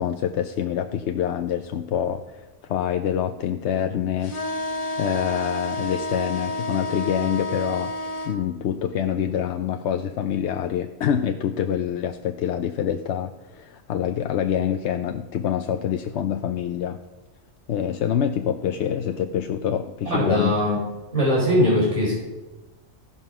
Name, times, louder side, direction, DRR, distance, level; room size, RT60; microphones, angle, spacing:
voice 1, 0.0-7.9 8.3-17.0 17.7-20.5, left 9 dB, 65° left, 7 dB, 0.8 m, -26 dB
sound 1, 4.2-8.4, left 2 dB, 30° left, 1.1 m, -30 dB
voice 2, 20.0-20.8 21.1-22.1, left 1 dB, 25° right, -5 dB, 4.1 m, -20 dB
16.0 x 5.5 x 6.0 m, 1.1 s
omnidirectional pair, 1.4 m